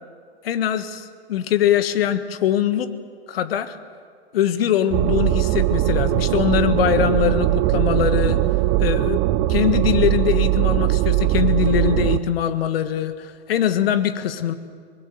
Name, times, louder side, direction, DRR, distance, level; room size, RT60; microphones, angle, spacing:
voice 1, 0.4-2.9 3.3-3.8 4.3-8.4 8.8-9.2 9.5-14.5, left 10 dB, 65° left, 11 dB, 1.5 m, -22 dB
sound 1, 4.9-12.2, right 15 dB, 35° right, 0.8 m, -20 dB
23.0 x 20.5 x 6.8 m, 2.2 s
hypercardioid pair, 115°, 32 cm